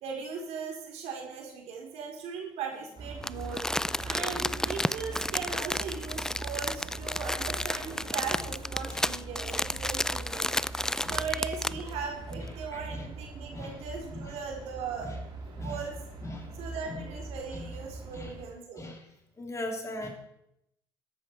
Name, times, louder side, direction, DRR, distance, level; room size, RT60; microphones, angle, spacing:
voice 1, 0.0-3.7 4.0-10.6 11.1-15.2 15.6-15.9 16.6-18.9, right 5 dB, 75° right, 1 dB, 3.9 m, -38 dB
sound 1, 3.0-18.4, right 2 dB, 45° right, 3.5 m, -42 dB
Crumpling crinkling, 3.2-11.9 12.3-12.4, left 1 dB, 5° left, 0.4 m, -32 dB
voice 2, 12.4-13.1 13.5-13.8 14.1-14.3 15.0-15.2 15.6-15.8 16.2-16.5 16.9-17.1 17.5-17.7 18.1-18.3 18.7-19.0 19.4-20.1, left 1 dB, 25° left, 2 dB, 3.2 m, -40 dB
13.5 x 11.0 x 4.6 m, 0.80 s
supercardioid pair, 85°, 11 cm